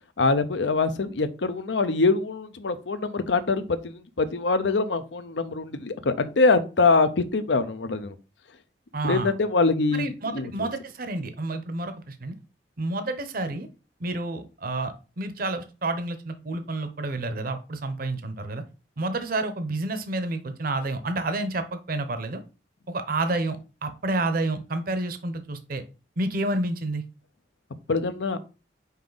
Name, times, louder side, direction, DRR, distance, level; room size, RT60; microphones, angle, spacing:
voice 1, 0.2-8.1 9.0-10.7 27.9-28.4, left 3 dB, 85° left, 12 dB, 0.7 m, -24 dB
voice 2, 8.9-9.3 9.9-12.3 12.8-13.7 14.0-18.6 19.0-22.4 22.9-25.8 26.2-27.0, right 2 dB, 55° right, 10 dB, 0.7 m, -29 dB
5.5 x 4.7 x 3.9 m, 0.32 s
head